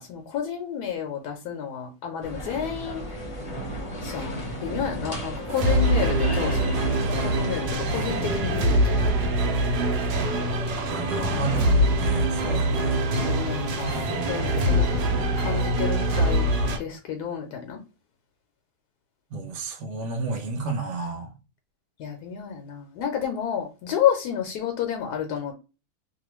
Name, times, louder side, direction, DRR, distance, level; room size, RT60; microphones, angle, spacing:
voice 1, 0.0-3.1 4.0-6.8 7.2-9.1 13.2-14.9 15.4-17.8 22.0-25.5, left 8 dB, 75° left, 1.1 m, -30 dB
sound 1, 2.2-8.4, equal, 30° left, 0.6 m, -34 dB
sound 2, 5.5-16.8, right 1 dB, 80° right, 1.2 m, -24 dB
voice 2, 10.8-13.0 19.3-21.3, right 3 dB, 55° right, 1.0 m, -32 dB
2.9 x 2.2 x 3.0 m
omnidirectional pair, 1.7 m